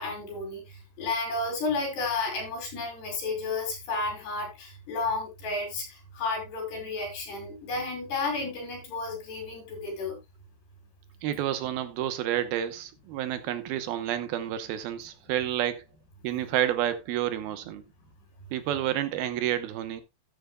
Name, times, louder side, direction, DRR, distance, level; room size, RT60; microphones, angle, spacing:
voice 1, 0.0-10.2, left 3 dB, 65° left, 7.4 m, -32 dB
voice 2, 11.2-15.9 16.2-17.8 18.5-20.0, right 11 dB, 70° right, 2.5 m, -29 dB
13.5 x 10.5 x 2.3 m
omnidirectional pair, 5.1 m